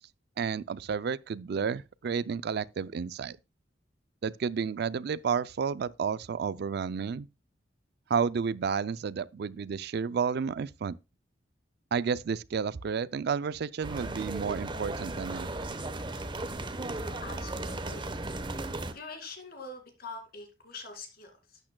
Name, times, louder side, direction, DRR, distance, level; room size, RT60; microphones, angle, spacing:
voice 1, 0.4-3.4 4.2-7.3 8.1-11.0 11.9-15.7, right 6 dB, 60° right, 0.4 m, -31 dB
sound 1, 13.8-18.9, right 2 dB, 25° right, 0.9 m, -36 dB
voice 2, 16.9-18.1 18.9-21.6, left 3 dB, 55° left, 2.4 m, -44 dB
12.0 x 8.6 x 2.2 m
head